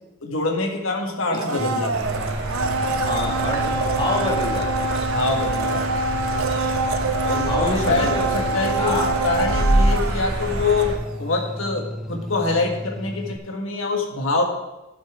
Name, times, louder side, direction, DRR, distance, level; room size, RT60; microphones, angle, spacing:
voice 1, 0.2-2.1 5.1-6.0 7.2-14.4, left 3 dB, 75° left, 1 dB, 1.6 m, -25 dB
voice 2, 1.3-1.9 3.0-5.1 7.4-8.4 8.8-9.1, left 1 dB, 20° left, -2 dB, 1.8 m, -28 dB
Domestic sounds home sounds, 1.3-11.3 11.6-11.7, right 3 dB, 90° right, 0.7 m, -25 dB
sound 1, 1.6-13.4, equal, ahead, 0.4 m, -34 dB
sound 2, 1.9-11.0, right 1 dB, 60° right, 1.2 m, -27 dB
14.0 x 5.7 x 3.6 m, 1.0 s
head